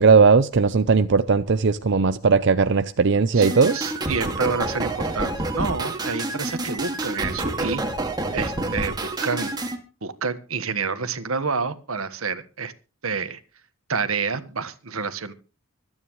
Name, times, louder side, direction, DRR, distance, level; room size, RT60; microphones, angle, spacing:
voice 1, 0.0-3.8, right 5 dB, 55° right, 0.6 m, -18 dB
sound 1, 3.4-9.8, right 2 dB, 20° right, 2.1 m, -28 dB
voice 2, 3.7-7.8 8.3-9.5 10.0-12.7 13.0-13.4 13.9-15.3, right 5 dB, 80° right, 1.4 m, -28 dB
25.5 x 9.7 x 3.2 m
head